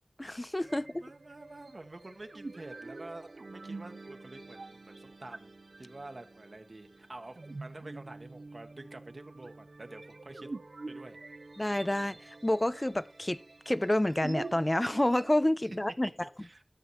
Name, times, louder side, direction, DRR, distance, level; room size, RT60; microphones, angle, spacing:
voice 1, 0.2-1.0 11.6-13.4 13.7-16.1, left 1 dB, 25° left, 0.3 m, -29 dB
sound 1, 0.6-15.4, right 3 dB, 90° right, 0.4 m, -46 dB
voice 2, 1.0-10.5 10.9-11.2 16.0-16.6, right 2 dB, 70° right, 1.1 m, -48 dB
13.5 x 6.8 x 3.1 m
wide cardioid pair, 50°, 0 cm